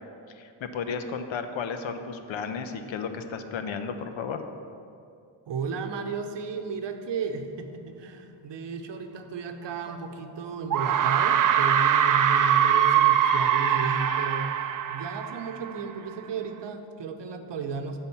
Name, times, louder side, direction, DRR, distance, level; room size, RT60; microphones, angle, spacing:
voice 1, 0.4-4.4, left 5 dB, 70° left, 8 dB, 0.8 m, -33 dB
voice 2, 5.5-14.6 14.9-18.0, right 5 dB, 60° right, 6 dB, 0.9 m, -34 dB
sound 1, 9.9-10.0 10.7-15.9, right 9 dB, 40° right, 0.5 m, -23 dB
9.8 x 3.8 x 7.0 m, 2.5 s
cardioid pair, 85°, 49 cm